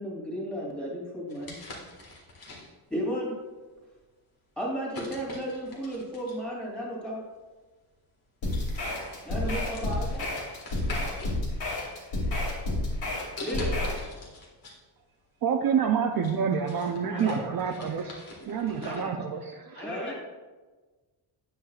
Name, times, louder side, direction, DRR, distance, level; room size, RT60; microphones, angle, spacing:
voice 1, 0.0-1.6 2.9-3.3 4.6-7.2 9.2-10.3 13.4-13.8 19.8-20.1, equal, ahead, -4 dB, 2.5 m, -33 dB
sound 1, 1.3-2.9 3.7-3.9 4.9-6.5 7.6-7.7 8.1-8.3 8.5-11.4 11.8-12.5 13.4-14.8 15.1-15.2 15.7-19.1, left 2 dB, 50° left, 1.8 m, -44 dB
sound 2, 8.4-14.0, left 2 dB, 75° left, 2.9 m, -30 dB
voice 2, 15.4-19.9, right 7 dB, 50° right, 4 dB, 0.6 m, -28 dB
voice 3, 17.1-17.4 18.8-19.1 19.7-20.1, left 1 dB, 25° left, -3 dB, 1.7 m, -38 dB
10.0 x 8.6 x 2.4 m, 1.3 s
wide cardioid pair, 180°, 45 cm